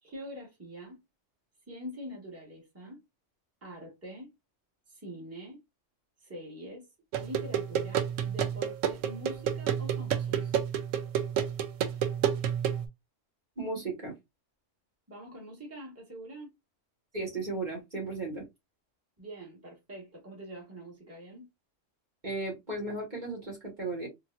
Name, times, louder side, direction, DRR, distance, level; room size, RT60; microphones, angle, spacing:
voice 1, 0.0-1.0 1.7-3.0 3.6-4.3 4.9-5.6 6.2-6.8 7.2-10.6 15.1-16.5 19.2-21.5, equal, 10° right, 1.3 m, -44 dB
sound 1, 7.1-12.9, right 9 dB, 90° right, 1.0 m, -30 dB
voice 2, 13.6-14.1 17.1-18.5 22.2-24.1, right 2 dB, 35° right, 1.4 m, -35 dB
3.8 x 2.3 x 2.3 m
omnidirectional pair, 1.3 m